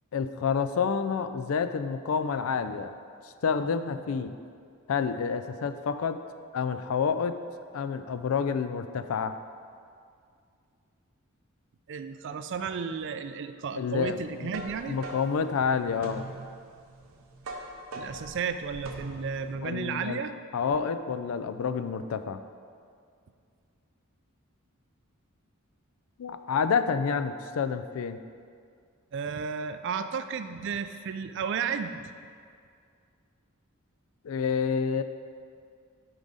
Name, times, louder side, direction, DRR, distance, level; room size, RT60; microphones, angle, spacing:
voice 1, 0.1-2.9 3.4-4.4 4.9-6.2 6.5-7.4 7.7-9.4 13.8-14.5 14.9-16.3 19.6-20.2 20.5-22.4 26.2-28.2 34.2-35.0, left 6 dB, 80° left, 10 dB, 0.4 m, -28 dB
voice 2, 11.9-15.0 17.9-20.3 29.1-32.1, right 6 dB, 60° right, 9 dB, 0.4 m, -33 dB
sound 1, 14.1-19.5, right 2 dB, 75° right, 0.8 m, -42 dB
8.8 x 4.9 x 4.0 m, 2.2 s
head